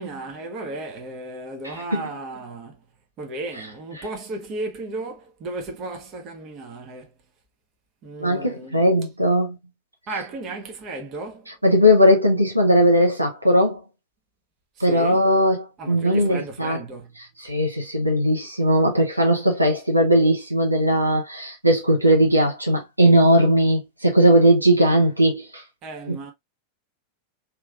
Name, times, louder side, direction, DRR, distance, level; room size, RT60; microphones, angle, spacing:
voice 1, 0.0-2.8 3.2-7.1 8.0-8.8 10.1-11.5 14.8-15.3 15.8-17.2 25.8-26.3, right 2 dB, 35° right, 1.2 m, -34 dB
voice 2, 1.6-2.0 8.2-9.6 11.6-13.8 14.8-16.8 17.4-25.6 26.1-26.2, equal, 85° right, 0.8 m, -18 dB
3.4 x 3.1 x 2.3 m
figure-of-eight pair, 90°, 0 cm